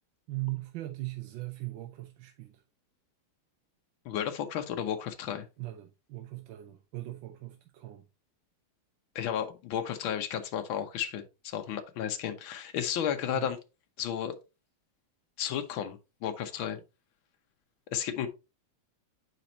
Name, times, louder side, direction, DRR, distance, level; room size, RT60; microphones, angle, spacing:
voice 1, 0.3-2.5 5.6-8.0 13.3-13.5, right 18 dB, 75° right, 1.3 m, -39 dB
voice 2, 4.0-5.5 9.1-13.6 14.0-14.3 15.4-16.8 17.9-18.3, left 9 dB, 70° left, 1.7 m, -33 dB
7.6 x 5.2 x 2.8 m
omnidirectional pair, 2.3 m